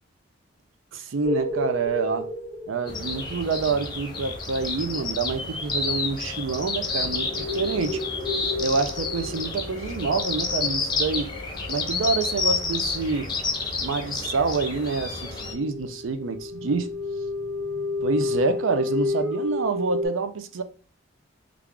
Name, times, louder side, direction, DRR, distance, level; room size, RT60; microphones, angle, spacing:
voice 1, 0.9-2.3 2.7-8.0 8.6-11.3 11.7-13.3 13.8-16.9 18.0-20.6, right 4 dB, 80° right, 0.5 m, -27 dB
sound 1, 1.2-3.6 6.5-12.1 12.9-13.0 13.3-13.5 14.1-14.2 14.4-14.6 14.9-20.1, left 2 dB, 45° right, 0.9 m, -32 dB
sound 2, 2.9-15.5, left 4 dB, 20° left, 0.6 m, -30 dB
3.3 x 2.4 x 3.5 m
head